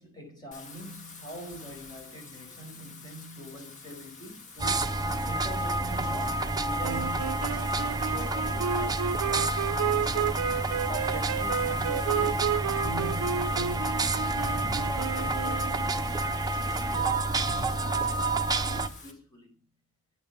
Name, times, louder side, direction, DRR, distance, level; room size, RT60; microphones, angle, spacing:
voice 1, 0.0-10.3 10.9-12.5 12.8-19.5, equal, 20° left, 4.7 m, -44 dB
Wind / Rain, 0.5-19.1, left 3 dB, 35° left, 2.1 m, -46 dB
sound 1, 4.6-18.9, right 2 dB, 20° right, 0.8 m, -29 dB
sound 2, 6.8-16.0, right 8 dB, 90° right, 0.4 m, -32 dB
10.0 x 9.1 x 5.5 m
head